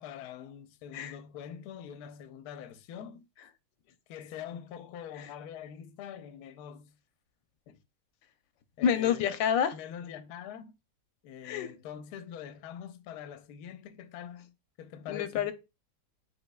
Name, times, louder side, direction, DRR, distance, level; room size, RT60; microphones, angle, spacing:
voice 1, 0.0-3.3 4.1-6.9 7.7-7.8 8.8-9.3 9.7-10.7 11.2-15.5, left 9 dB, 70° left, 1.0 m, -44 dB
voice 2, 8.8-9.7 11.4-11.7 15.1-15.5, left 8 dB, 90° left, 1.3 m, -28 dB
5.3 x 3.6 x 2.2 m
omnidirectional pair, 2.0 m